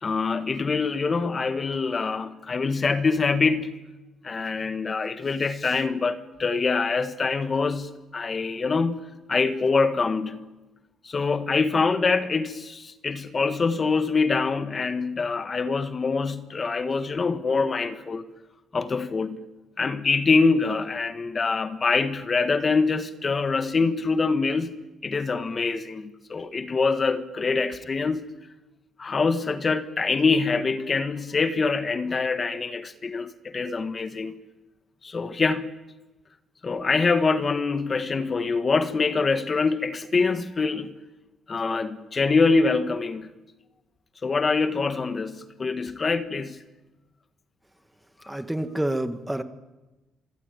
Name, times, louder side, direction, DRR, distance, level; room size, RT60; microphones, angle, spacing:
voice 1, 0.0-3.7 4.2-10.4 11.0-18.3 18.7-19.4 19.8-24.7 25.0-28.3 29.0-34.3 35.0-35.7 36.6-40.9 41.5-43.3 44.2-46.6 48.3-48.4, left 4 dB, 25° left, 1.3 m, -25 dB
voice 2, 48.3-49.4, right 1 dB, 5° right, 1.4 m, -28 dB
26.0 x 23.0 x 9.2 m
cardioid pair, 140°, 0 cm